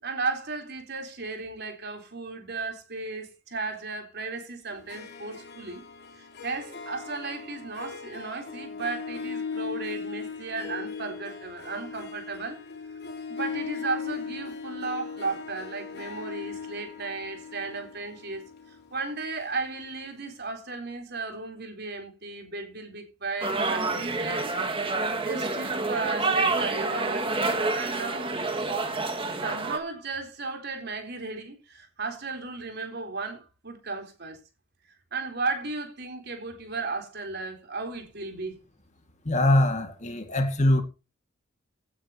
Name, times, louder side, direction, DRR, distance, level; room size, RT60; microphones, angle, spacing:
voice 1, 0.0-5.8 6.2-12.6 13.3-18.4 18.9-24.5 24.9-28.3 29.2-34.4 35.1-38.6, right 3 dB, 60° right, 3.9 m, -35 dB
Harp, 4.7-20.1, left 5 dB, 60° left, 3.1 m, -39 dB
sound 1, 23.4-29.8, right 3 dB, 30° right, 2.0 m, -28 dB
voice 2, 39.3-40.8, left 1 dB, 40° left, 2.1 m, -22 dB
17.0 x 9.3 x 3.0 m
head